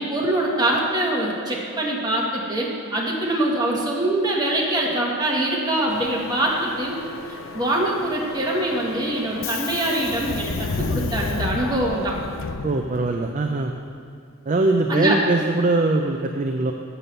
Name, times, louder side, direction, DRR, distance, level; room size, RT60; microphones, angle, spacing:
voice 1, 0.0-7.0 7.5-12.2 14.9-15.2, right 1 dB, 20° right, -3 dB, 1.5 m, -23 dB
Subway metro underground, 5.9-13.3, left 4 dB, 60° left, 0.5 m, -32 dB
voice 2, 12.6-13.7 14.5-16.7, right 2 dB, 35° right, 3 dB, 0.4 m, -21 dB
7.5 x 6.9 x 6.8 m, 2.5 s
head